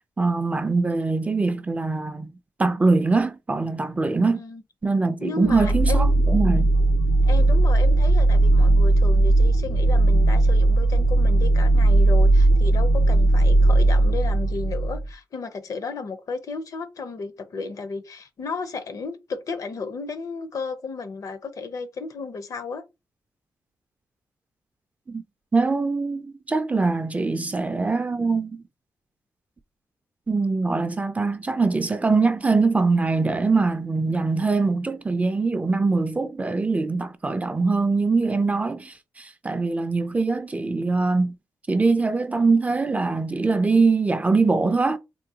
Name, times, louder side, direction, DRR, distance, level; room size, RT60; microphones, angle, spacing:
voice 1, 0.2-2.3 2.6-4.4 4.8-6.7 25.1-25.2 25.5-28.6 30.3-41.3 41.7-45.0, right 3 dB, 20° right, 0.3 m, -22 dB
voice 2, 5.2-6.1 7.3-22.8, left 4 dB, 60° left, 0.5 m, -33 dB
sound 1, 5.4-15.1, right 2 dB, 85° left, 0.8 m, -18 dB
3.6 x 2.2 x 2.7 m
cardioid pair, 90°, 7 cm